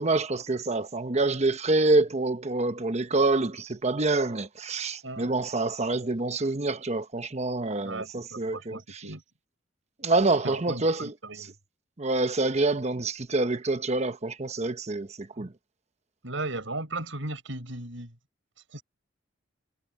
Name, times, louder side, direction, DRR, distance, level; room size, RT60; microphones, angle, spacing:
voice 1, 0.0-8.8 10.0-11.1 12.0-15.5, right 2 dB, 35° right, 1.0 m, -26 dB
voice 2, 5.0-5.3 7.8-9.2 10.4-11.5 15.4-15.5 16.2-18.1 18.7-18.8, right 2 dB, 75° right, 7.0 m, -36 dB
head